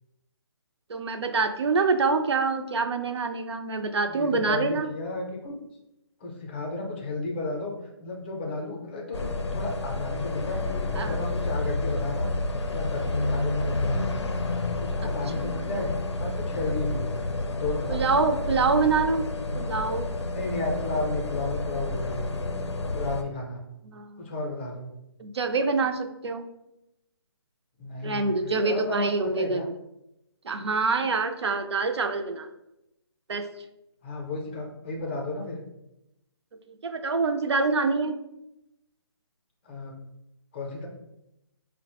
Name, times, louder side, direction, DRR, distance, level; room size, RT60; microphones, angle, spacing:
voice 1, 0.9-4.9 11.0-11.2 15.4-15.7 17.9-19.3 19.5-20.0 23.8-24.3 25.2-26.5 28.0-29.6 30.4-32.5 33.3-33.5 36.8-38.2, right 4 dB, 75° right, 6 dB, 0.4 m, -26 dB
voice 2, 4.1-5.5 6.2-7.7 8.0-10.6 10.9-12.3 12.7-14.1 14.7-15.9 16.2-17.1 17.5-18.2 20.3-22.2 22.9-23.6 24.2-24.8 27.8-28.4 28.6-29.7 34.0-35.6 39.6-39.9 40.5-40.9, left 2 dB, 25° left, 0 dB, 0.5 m, -33 dB
sound 1, 9.1-23.2, left 2 dB, 85° left, 0.5 m, -29 dB
4.0 x 2.0 x 2.9 m, 0.87 s
figure-of-eight pair, 155°, 14 cm